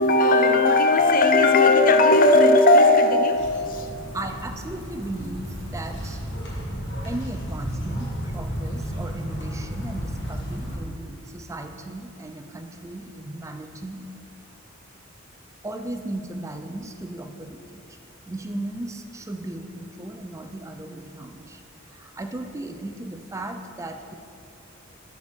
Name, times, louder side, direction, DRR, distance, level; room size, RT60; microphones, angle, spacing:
voice 1, 0.0-4.0, left 2 dB, 45° left, 6 dB, 0.6 m, -17 dB
sound 1, 3.3-10.8, equal, 60° left, 1.7 m, -33 dB
voice 2, 4.1-6.2 7.0-14.1 15.6-18.0 18.3-21.6 21.9-24.1, right 1 dB, 15° right, 6 dB, 0.4 m, -36 dB
7.6 x 4.3 x 6.2 m, 2.5 s
head